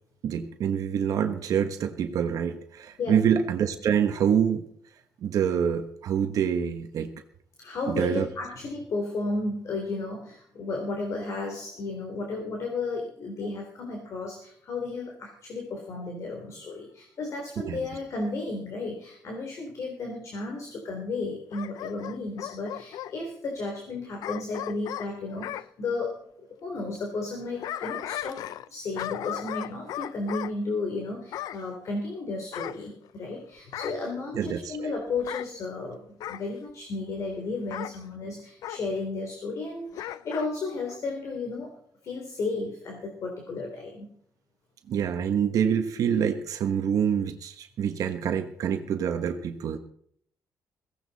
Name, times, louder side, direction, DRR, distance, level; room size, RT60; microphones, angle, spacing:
voice 1, 0.2-4.6 5.2-7.1 7.9-8.3 17.6-17.8 34.4-34.9 44.9-49.8, right 8 dB, 65° right, 6 dB, 1.3 m, -26 dB
voice 2, 7.6-26.2 26.6-28.4 28.7-41.7 42.0-44.1, left 3 dB, 55° left, 1 dB, 3.5 m, -33 dB
Bark / Growling, 21.5-23.1 24.2-25.7 27.3-28.7 29.0-30.5 31.3-31.6 32.5-33.3 33.7-34.1 35.2-35.5 36.2-36.5 37.7-38.0 38.6-38.8 39.9-40.5 40.9-41.0, left 12 dB, 80° left, 0.5 m, -36 dB
16.0 x 16.0 x 4.2 m, 0.66 s
cardioid pair, 140°, 6 cm